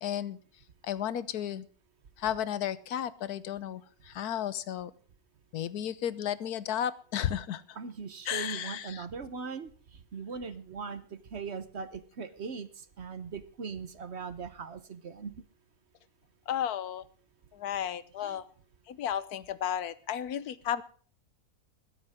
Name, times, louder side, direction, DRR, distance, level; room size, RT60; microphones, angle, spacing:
voice 1, 0.0-0.4 0.8-1.7 2.2-4.9 5.5-7.6 8.2-9.1 16.5-17.0 17.5-18.4 18.9-20.8, left 10 dB, 90° left, 16 dB, 1.3 m, -33 dB
voice 2, 7.8-15.3 18.2-18.4, right 5 dB, 50° right, 12 dB, 1.1 m, -40 dB
21.0 x 10.0 x 3.6 m, 0.42 s
omnidirectional pair, 1.6 m